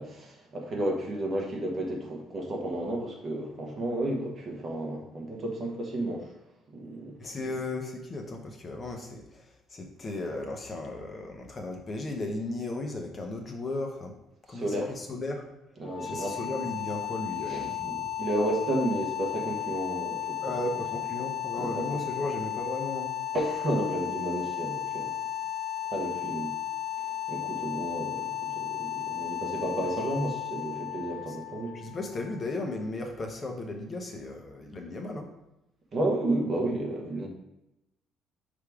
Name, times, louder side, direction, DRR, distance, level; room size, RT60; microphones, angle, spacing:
voice 1, 0.0-6.3 6.7-7.1 14.5-14.9 15.8-16.5 17.5-20.4 21.6-22.0 23.3-25.2 25.9-26.6 27.0-31.8 35.9-37.3, right 1 dB, 30° right, 0 dB, 1.1 m, -32 dB
voice 2, 7.2-14.1 14.5-15.4 16.0-18.1 20.4-23.1 31.3-31.4 31.7-35.3, left 2 dB, 25° left, 2 dB, 0.7 m, -35 dB
sound 1, 15.8-32.8, left 11 dB, 70° left, 1.8 m, -34 dB
5.7 x 3.5 x 4.8 m, 0.92 s
cardioid pair, 160°, 0 cm